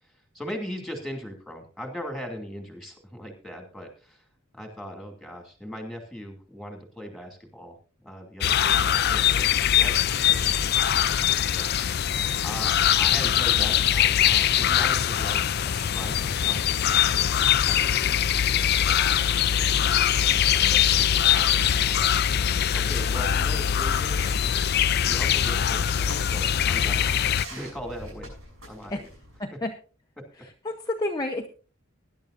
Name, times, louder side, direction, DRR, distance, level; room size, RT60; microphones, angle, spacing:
voice 1, 0.0-4.2 4.5-7.7 8.0-10.5 12.4-17.0 17.5-21.5 21.8-22.0 22.3-24.2 25.1-27.2 27.5-28.3 28.7-29.1 29.5-29.6 30.2-30.3, equal, ahead, 3 dB, 2.6 m, -40 dB
sound 1, 8.4-27.5, left 10 dB, 50° left, 0.5 m, -22 dB
sound 2, 22.8-29.4, right 1 dB, 80° right, 7.1 m, -43 dB
voice 2, 29.4-29.7 30.6-31.5, left 2 dB, 20° left, 2 dB, 0.9 m, -29 dB
20.0 x 11.0 x 2.6 m, 0.36 s
head